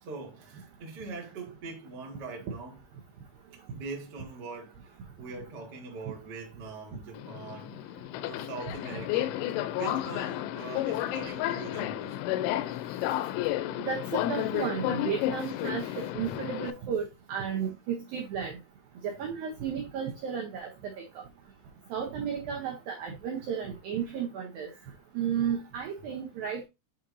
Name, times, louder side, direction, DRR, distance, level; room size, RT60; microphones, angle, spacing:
voice 1, 0.0-2.8 3.7-7.8 8.2-9.4 9.7-12.2 12.7-13.3 15.4-15.5 15.8-16.4 24.7-25.0, right 4 dB, 60° right, 1.0 m, -43 dB
Subway metro underground, 7.1-16.7, left 13 dB, 90° left, 3.0 m, -32 dB
voice 2, 13.8-18.6 19.0-20.9 21.9-24.7 25.1-26.6, right 7 dB, 80° right, 2.1 m, -33 dB
8.8 x 4.4 x 2.6 m
omnidirectional pair, 5.4 m